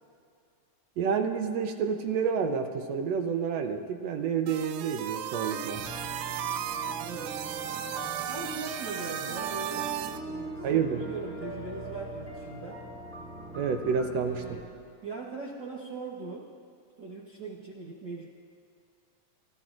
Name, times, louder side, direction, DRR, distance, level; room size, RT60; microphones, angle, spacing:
voice 1, 1.0-5.9 10.6-11.1 13.5-14.6, right 6 dB, 70° right, 6 dB, 1.8 m, -29 dB
sound 1, 4.5-10.2, right 10 dB, 85° right, 2.0 m, -35 dB
sound 2, 5.5-14.2, right 2 dB, 10° right, 0.9 m, -43 dB
sound 3, 5.7-14.6, equal, 90° left, 3.6 m, -47 dB
voice 2, 7.0-7.3 8.3-12.8 15.0-16.5 17.0-18.2, right 3 dB, 55° right, -4 dB, 1.2 m, -40 dB
24.0 x 13.5 x 2.5 m, 2.3 s
omnidirectional pair, 3.3 m